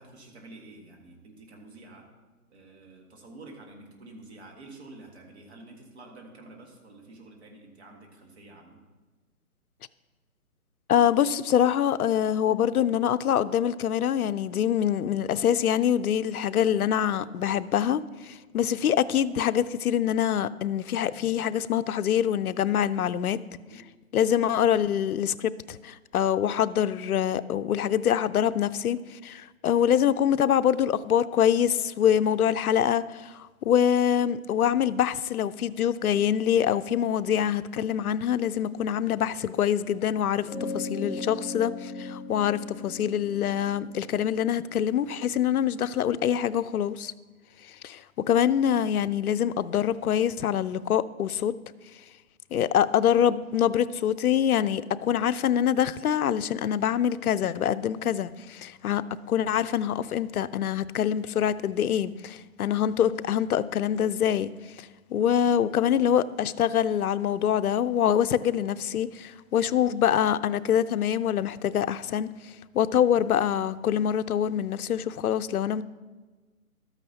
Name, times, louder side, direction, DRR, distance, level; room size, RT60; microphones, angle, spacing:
voice 1, 0.0-2.1 2.5-8.8 18.5-18.7 21.1-21.4 23.5-23.8 65.2-65.4, right 2 dB, 45° right, 1.7 m, -49 dB
voice 2, 10.9-23.4 24.1-47.1 47.6-51.5 52.5-59.0 59.3-64.5 64.8-75.8, left 9 dB, 75° left, 0.5 m, -25 dB
sound 1, 40.4-45.3, left 3 dB, 5° left, 0.9 m, -38 dB
13.0 x 9.0 x 2.8 m
hypercardioid pair, 165°, 45 cm